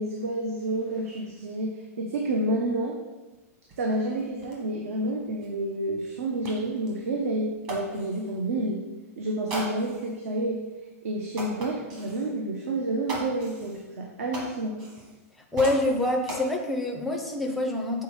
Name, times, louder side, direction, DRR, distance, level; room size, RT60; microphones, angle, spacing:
voice 1, 0.0-3.0 3.8-8.8 9.2-10.6 11.0-14.9, right 1 dB, 65° right, 1 dB, 0.9 m, -29 dB
sound 1, 3.3-3.4 3.7-8.4 9.5-10.2 10.7-10.8 11.3-12.3 13.1-15.3 15.5-16.4, right 1 dB, 25° right, 1.3 m, -39 dB
voice 2, 15.5-18.0, left 1 dB, ahead, 1 dB, 0.5 m, -26 dB
6.8 x 4.1 x 4.8 m, 1.2 s
supercardioid pair, 180°, 8 cm